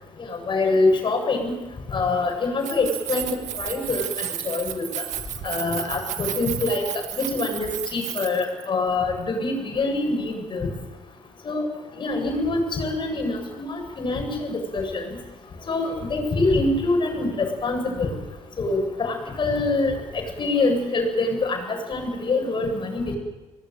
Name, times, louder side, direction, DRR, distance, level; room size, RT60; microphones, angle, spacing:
voice 1, 0.3-1.5 1.9-4.9 5.4-10.7 11.4-11.7 12.0-15.0 15.7-18.1 18.6-23.1, left 3 dB, 40° left, 3 dB, 7.9 m, -25 dB
Keys jangling, 2.5-8.7, right 12 dB, 80° right, 1.7 m, -32 dB
24.5 x 19.5 x 9.3 m, 1.2 s
cardioid pair, 100°, 12 cm